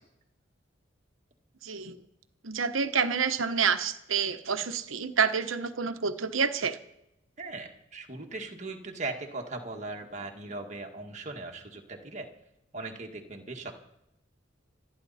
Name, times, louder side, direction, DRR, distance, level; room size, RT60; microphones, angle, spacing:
voice 1, 1.6-2.0 2.4-6.8, right 6 dB, 90° right, 9 dB, 1.0 m, -28 dB
voice 2, 7.4-12.3 12.7-13.7, right 3 dB, 35° right, 2 dB, 1.8 m, -39 dB
26.5 x 10.5 x 4.2 m, 0.87 s
head